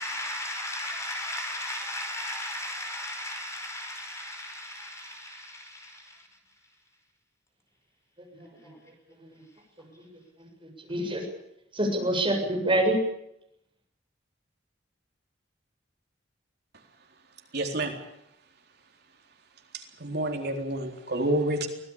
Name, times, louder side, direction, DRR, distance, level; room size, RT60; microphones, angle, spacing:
voice 1, 0.0-6.2, left 1 dB, 15° left, 5.1 m, -36 dB
voice 2, 8.3-8.7 9.2-9.3 10.0-10.1 10.4-10.5 10.9-11.2 11.7-13.0, right 1 dB, 30° right, 7.6 m, -26 dB
voice 3, 17.5-17.9 20.0-21.7, right 1 dB, 60° right, 4.0 m, -28 dB
24.0 x 18.0 x 8.8 m
head